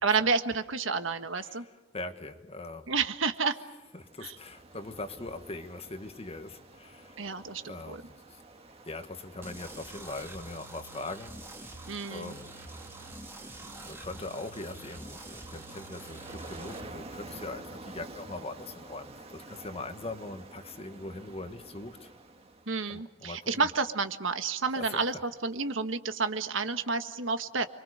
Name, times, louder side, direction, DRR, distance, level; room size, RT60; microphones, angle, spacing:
voice 1, 0.0-1.6 2.9-3.6 4.2-4.3 7.2-8.0 11.9-12.3 22.7-27.7, right 4 dB, 75° right, 8 dB, 1.6 m, -30 dB
voice 2, 1.4-2.9 3.9-7.2 7.6-8.4 8.9-11.4 12.0-12.8 13.6-22.1 22.9-23.7 24.7-25.0, left 2 dB, 30° left, 8 dB, 1.6 m, -41 dB
Ocean, 3.8-23.0, right 2 dB, 30° right, 1.9 m, -49 dB
sound 1, 9.4-16.8, right 2 dB, 15° right, 2.4 m, -46 dB
29.5 x 23.5 x 6.6 m, 1.1 s
head